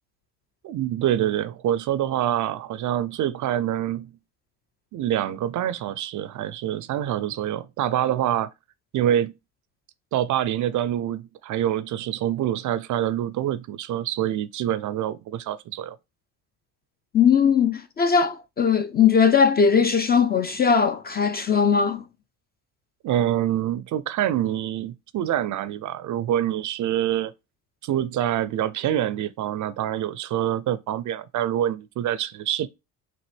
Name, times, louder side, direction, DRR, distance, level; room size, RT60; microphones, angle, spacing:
voice 1, 0.6-4.1 4.9-8.5 8.9-9.3 10.1-16.0 23.0-27.3 27.8-32.7, right 11 dB, 40° right, 0.5 m, -26 dB
voice 2, 17.1-22.0, left 6 dB, 25° left, 0.4 m, -19 dB
6.0 x 2.5 x 3.2 m
hypercardioid pair, 75°, 46 cm